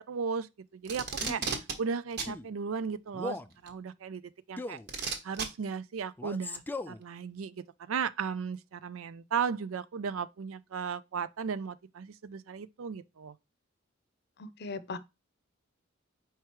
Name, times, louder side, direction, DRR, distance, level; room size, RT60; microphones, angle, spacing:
voice 1, 0.1-0.5 0.7-1.4 1.8-4.2 4.5-4.8 5.2-13.3, right 6 dB, 80° right, 0.4 m, -35 dB
Packing tape duct tape, 0.8-1.7 2.2-2.3 3.7-3.8 4.9-5.5 6.5-6.6, right 5 dB, 55° right, 1.2 m, -33 dB
Male speech man speaking, 1.2-1.5 2.2-2.5 3.1-3.5 4.6-4.9 6.2-7.0, left 2 dB, 10° left, 0.3 m, -38 dB
voice 2, 14.4-15.0, left 3 dB, 55° left, 0.6 m, -38 dB
4.7 x 4.6 x 4.5 m
head